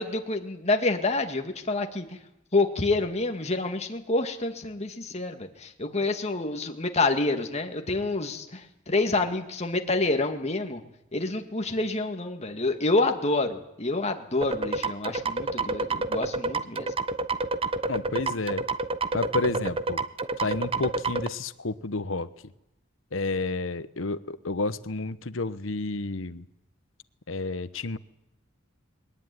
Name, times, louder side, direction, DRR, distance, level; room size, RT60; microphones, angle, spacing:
voice 1, 0.0-2.1 2.5-10.8 11.1-16.9, left 2 dB, 35° left, 5 dB, 2.3 m, -27 dB
sound 1, 14.4-21.3, right 3 dB, 30° right, 0.9 m, -28 dB
voice 2, 17.9-18.6 19.1-20.0 20.4-22.3 23.1-26.4 27.3-28.0, left 3 dB, 75° left, 14 dB, 1.1 m, -30 dB
22.0 x 18.5 x 9.8 m, 0.86 s
head